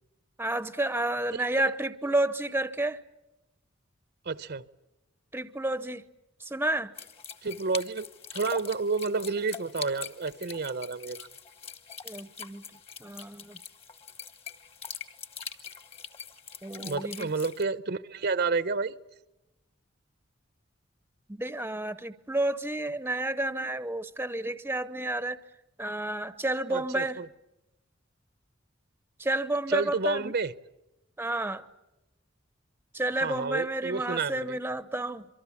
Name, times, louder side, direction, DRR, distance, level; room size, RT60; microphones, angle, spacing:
voice 1, 0.4-3.0 5.3-6.0 6.4-6.9 12.0-12.6 13.0-13.6 16.6-17.3 21.3-25.4 25.8-27.2 29.2-30.3 31.2-31.7 32.9-35.3, right 1 dB, 10° right, 0.8 m, -30 dB
voice 2, 4.2-4.6 7.4-8.1 8.3-11.3 16.7-19.0 26.7-27.3 29.7-30.5 33.2-34.6, right 4 dB, 55° right, 0.8 m, -30 dB
sound 1, 7.0-17.6, left 6 dB, 30° left, 1.3 m, -43 dB
26.5 x 24.0 x 7.2 m
head